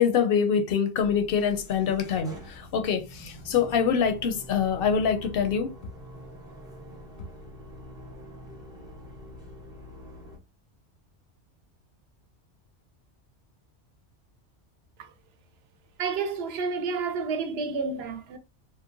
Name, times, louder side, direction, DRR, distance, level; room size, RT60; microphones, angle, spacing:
voice 1, 0.0-5.7, left 7 dB, 65° left, 0.7 m, -25 dB
sound 1, 1.0-10.4, left 1 dB, 5° right, 0.5 m, -45 dB
voice 2, 16.0-18.4, right 4 dB, 70° right, 0.8 m, -30 dB
3.0 x 2.2 x 2.5 m
omnidirectional pair, 1.2 m